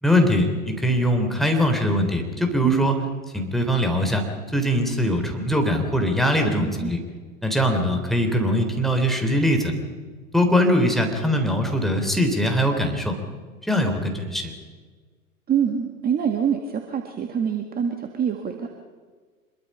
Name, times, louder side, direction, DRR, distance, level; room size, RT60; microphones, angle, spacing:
voice 1, 0.0-2.9 3.3-4.2 4.5-7.0 7.4-9.7 10.3-13.2 13.7-14.5, equal, ahead, 3 dB, 3.7 m, -21 dB
voice 2, 2.6-3.0 6.5-6.9 15.5-18.7, right 8 dB, 20° right, 4 dB, 1.8 m, -25 dB
26.0 x 22.5 x 5.6 m, 1.5 s
figure-of-eight pair, 100°, 45 cm